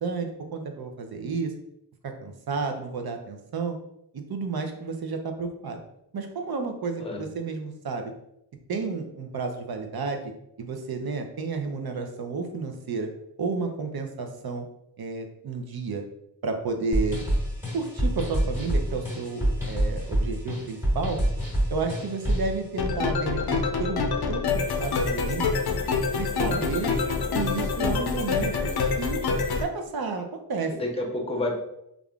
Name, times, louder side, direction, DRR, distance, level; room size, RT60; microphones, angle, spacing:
voice 1, 0.0-1.5 2.0-3.8 4.1-5.8 6.1-8.1 8.7-10.3 10.6-13.1 13.4-14.6 15.0-16.0 16.4-17.2 17.7-21.2 21.7-24.0 24.3-25.5 26.1-26.9 27.3-28.7 29.0-29.2 29.6-30.7, right 4 dB, 65° right, 5 dB, 0.5 m, -31 dB
sound 1, 16.9-22.6, right 1 dB, 5° right, 1.3 m, -26 dB
sound 2, 22.7-29.6, left 4 dB, 65° left, 0.5 m, -26 dB
voice 2, 26.5-27.0 30.7-31.5, left 1 dB, 15° left, 1 dB, 0.6 m, -30 dB
3.4 x 2.4 x 2.3 m, 0.78 s
wide cardioid pair, 80°, 41 cm